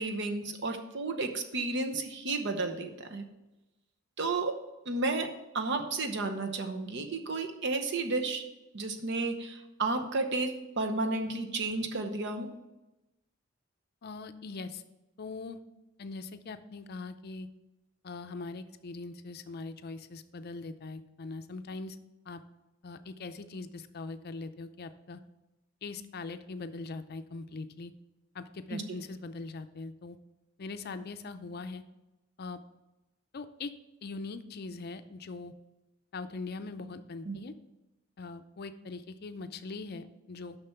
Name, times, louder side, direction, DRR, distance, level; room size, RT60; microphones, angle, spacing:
voice 1, 0.0-3.2 4.2-8.5 8.7-12.5 28.7-28.8 37.2-37.4, right 3 dB, 60° right, 6 dB, 0.9 m, -32 dB
voice 2, 14.0-14.8 15.2-15.6 16.0-17.5 18.0-22.0 22.3-22.4 22.8-25.2 25.8-27.9 28.3-30.2 30.6-31.8 32.4-32.6 33.3-33.7 34.0-35.5 36.1-37.5 38.2-40.6, left 3 dB, 50° left, 10 dB, 0.5 m, -41 dB
6.7 x 5.9 x 5.7 m, 1.0 s
head